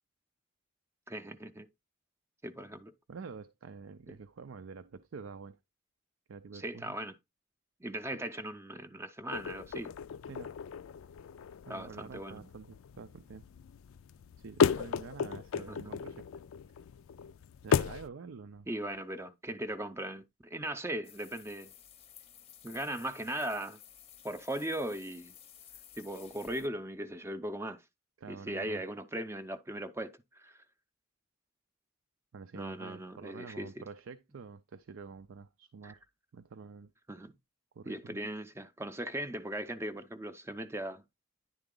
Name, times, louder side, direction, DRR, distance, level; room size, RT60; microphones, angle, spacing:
voice 1, 1.1-1.7 2.4-2.9 6.5-7.1 7.8-9.9 11.7-12.5 15.5-16.0 18.7-21.7 22.6-23.8 24.2-25.4 26.0-27.8 28.3-30.6 32.5-33.7 35.8-36.0 37.1-37.3 37.9-41.0, right 1 dB, 15° right, 0.5 m, -38 dB
voice 2, 3.1-5.6 6.3-7.0 10.3-10.5 11.7-13.4 14.4-16.3 17.6-18.7 28.2-28.8 32.3-36.0 36.3-36.9 37.8-38.2, right 5 dB, 75° right, 0.5 m, -47 dB
sound 1, 9.3-18.1, left 6 dB, 85° left, 0.4 m, -35 dB
sound 2, 21.0-26.7, left 9 dB, 30° left, 0.7 m, -55 dB
10.0 x 3.8 x 3.8 m
head